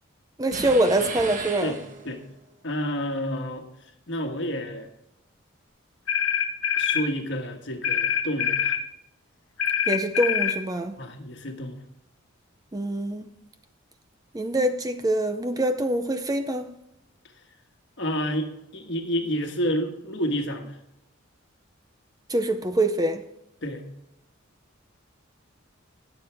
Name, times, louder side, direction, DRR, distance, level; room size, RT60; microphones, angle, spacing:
voice 1, 0.4-1.7 9.9-11.0 12.7-13.2 14.3-16.7 22.3-23.2, right 1 dB, 15° right, 0.5 m, -24 dB
sound 1, 0.5-2.3, right 3 dB, 40° right, 1.0 m, -35 dB
voice 2, 2.6-3.6 4.1-4.9 6.8-8.8 11.0-11.8 18.0-20.8 23.6-23.8, equal, 55° left, 1.4 m, -29 dB
sound 2, 6.1-7.1 7.8-8.8 9.6-10.6, left 8 dB, 85° left, 0.8 m, -24 dB
19.0 x 7.2 x 3.4 m
head